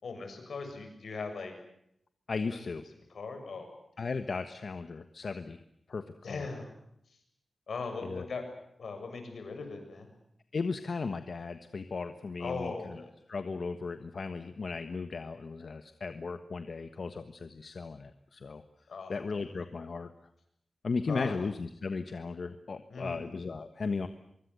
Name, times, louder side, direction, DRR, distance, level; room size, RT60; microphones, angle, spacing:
voice 1, 0.0-1.5 2.5-2.6 3.1-3.7 6.2-6.7 7.7-8.4 8.8-10.1 12.4-13.1 18.9-19.2 21.1-21.4 22.9-23.3, left 4 dB, 85° left, 6 dB, 7.2 m, -39 dB
voice 2, 2.3-2.8 4.0-5.6 5.9-6.5 8.0-8.3 10.5-13.0 13.3-18.6 19.1-20.1 20.8-24.1, left 4 dB, 65° left, 9 dB, 1.4 m, -36 dB
24.5 x 24.0 x 8.2 m, 0.75 s
wide cardioid pair, 95°, 0 cm